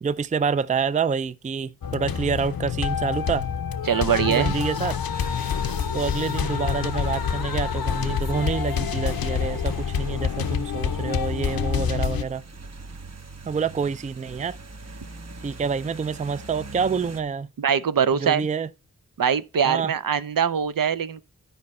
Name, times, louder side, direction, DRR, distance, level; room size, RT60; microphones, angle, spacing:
voice 1, 0.0-3.5 4.3-5.0 5.9-12.4 13.5-14.6 15.4-17.5 18.1-18.7 19.6-19.9, right 5 dB, 25° right, 0.3 m, -27 dB
sound 1, 1.8-12.2, left 7 dB, 90° left, 0.7 m, -27 dB
voice 2, 3.9-4.5 17.6-18.5 19.2-21.2, right 7 dB, 70° right, 0.6 m, -22 dB
sound 2, 5.1-17.2, right 3 dB, 50° right, 1.0 m, -43 dB
11.0 x 5.2 x 4.2 m
wide cardioid pair, 85°, 34 cm